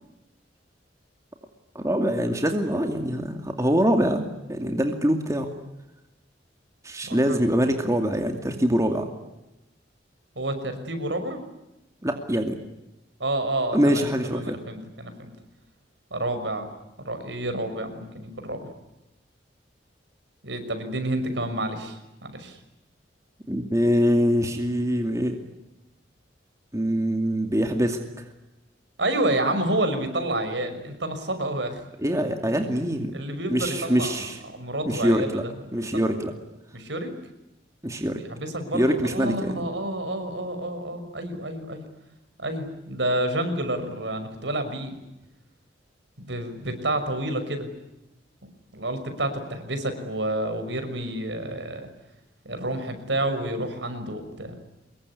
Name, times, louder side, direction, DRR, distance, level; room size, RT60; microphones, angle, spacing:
voice 1, 1.7-4.2 4.5-5.5 6.8-9.1 12.0-12.6 13.7-14.6 23.5-25.4 26.7-28.2 32.0-33.1 33.5-34.4 34.9-35.4 35.7-36.3 37.8-38.2 38.7-39.5, equal, 15° right, 4 dB, 2.4 m, -24 dB
voice 2, 7.0-7.4 10.4-11.4 13.2-15.3 16.1-16.7 17.1-18.7 20.4-22.6 29.0-31.8 33.1-34.2 34.5-36.1 36.7-37.1 38.0-41.8 42.4-44.9 46.2-47.7 48.4-51.9 52.4-54.6, right 1 dB, 70° right, 8 dB, 5.9 m, -29 dB
25.5 x 22.5 x 9.8 m, 0.94 s
head